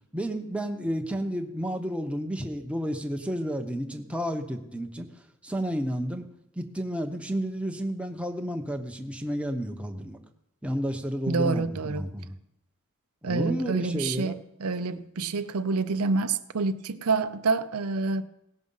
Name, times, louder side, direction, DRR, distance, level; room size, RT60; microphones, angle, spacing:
voice 1, 0.1-5.1 5.4-6.3 6.6-10.2 10.6-12.4 13.2-14.4, equal, 5° right, 0.8 m, -31 dB
voice 2, 11.3-12.1 13.2-18.2, right 4 dB, 80° right, 0.6 m, -27 dB
17.5 x 6.2 x 5.5 m
head